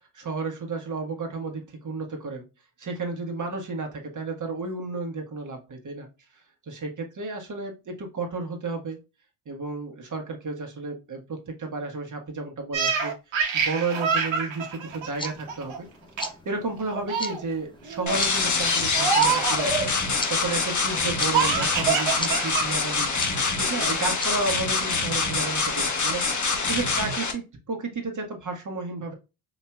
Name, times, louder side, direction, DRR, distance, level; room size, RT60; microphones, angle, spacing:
voice 1, 0.1-2.5 2.8-6.1 6.7-9.0 9.5-15.9 16.4-19.9 20.3-23.1 23.6-26.3 26.7-29.1, right 3 dB, 40° right, 2 dB, 1.4 m, -32 dB
Laughter, 12.7-15.8 16.2-16.5 16.8-17.4 17.9-18.2 18.9-19.9 21.3-22.7 23.0-23.1 23.7-24.2, right 6 dB, 70° right, 1.3 m, -26 dB
sound 1, 14.9-25.1, left 2 dB, 10° left, 0.6 m, -40 dB
sound 2, 18.1-27.3, left 4 dB, 35° left, 1.2 m, -25 dB
5.2 x 2.8 x 2.3 m, 0.27 s
cardioid pair, 80°, 48 cm